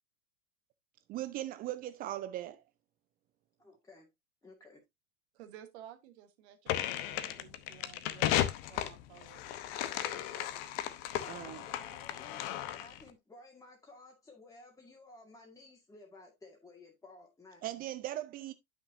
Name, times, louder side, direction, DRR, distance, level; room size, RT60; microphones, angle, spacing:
voice 1, 1.1-2.6 11.3-11.6 17.6-18.5, right 14 dB, 20° right, 0.5 m, -39 dB
voice 2, 3.6-4.1 4.4-4.8 11.3-17.7, left 2 dB, 10° left, 2.1 m, -55 dB
voice 3, 5.3-10.5, right 11 dB, 50° right, 1.4 m, -55 dB
sound 1, 6.7-13.0, left 13 dB, 40° left, 0.9 m, -35 dB
9.9 x 5.9 x 2.7 m
figure-of-eight pair, 95°, 42 cm